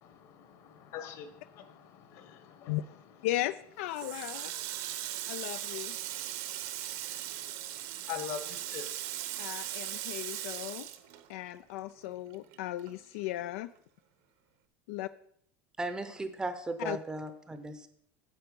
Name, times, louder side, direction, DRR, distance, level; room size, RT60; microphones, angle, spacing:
voice 1, 0.0-3.3 4.6-9.3, left 8 dB, 50° left, 1.3 m, -46 dB
voice 2, 3.2-4.5 5.3-6.0 9.4-10.9 11.3-13.7 14.9-15.1 16.8-17.0, left 15 dB, 75° left, 0.3 m, -36 dB
Water tap faucet, 3.9-11.8 12.1-13.4, right 13 dB, 60° right, 0.9 m, -39 dB
voice 3, 15.8-17.9, right 2 dB, 10° right, 0.6 m, -36 dB
9.1 x 7.7 x 5.2 m
supercardioid pair, 150°, 7 cm